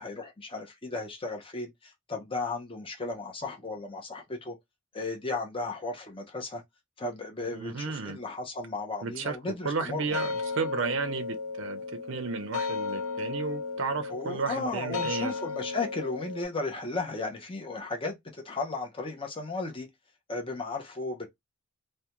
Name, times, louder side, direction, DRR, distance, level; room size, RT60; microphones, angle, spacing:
voice 1, 0.0-4.6 4.9-6.6 7.0-10.2 14.1-19.9 20.3-21.3, left 3 dB, 25° left, 0.6 m, -35 dB
voice 2, 7.5-8.2 9.0-9.4 9.6-11.8 12.1-15.3, right 5 dB, 65° right, 0.5 m, -33 dB
sound 1, 9.9-16.4, left 4 dB, 90° left, 0.5 m, -35 dB
2.3 x 2.2 x 2.9 m
head